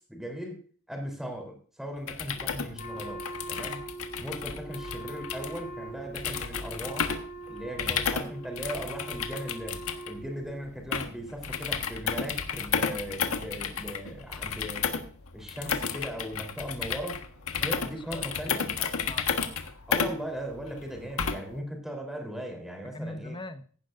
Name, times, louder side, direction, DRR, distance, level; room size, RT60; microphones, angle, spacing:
voice 1, 0.1-0.6 0.9-3.8 4.2-9.8 10.1-14.9 15.3-17.2 17.6-18.8 19.9-23.4, equal, ahead, 2 dB, 3.6 m, -38 dB
sound 1, 2.0-21.6, left 6 dB, 85° left, 1.4 m, -33 dB
Wind instrument woodwind instrument, 2.8-10.7, right 2 dB, 50° left, 5.8 m, -42 dB
voice 2, 17.6-19.5 22.8-23.7, left 1 dB, 25° left, 9 dB, 1.1 m, -42 dB
15.5 x 11.0 x 2.6 m, 0.43 s
head